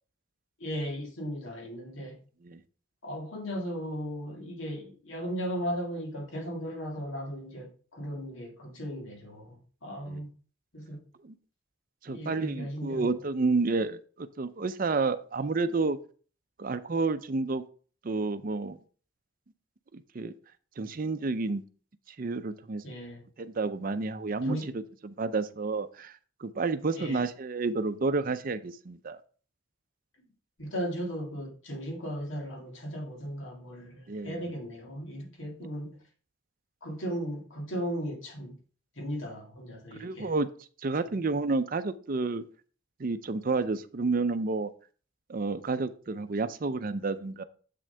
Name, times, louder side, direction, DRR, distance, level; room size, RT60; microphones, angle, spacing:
voice 1, 0.6-2.2 3.0-10.3 10.7-11.0 12.1-13.2 22.8-23.2 24.4-24.7 27.0-27.2 30.6-35.9 36.8-38.6 39.0-40.3, equal, 75° left, 1.9 m, -36 dB
voice 2, 12.0-16.0 16.6-17.6 18.0-18.8 19.9-20.3 20.8-21.6 22.2-22.8 23.4-24.6 25.0-29.2 34.1-34.4 39.9-40.5 40.8-42.4 43.0-44.7 45.3-47.4, right 3 dB, 45° right, 0.5 m, -30 dB
7.7 x 6.2 x 3.3 m
head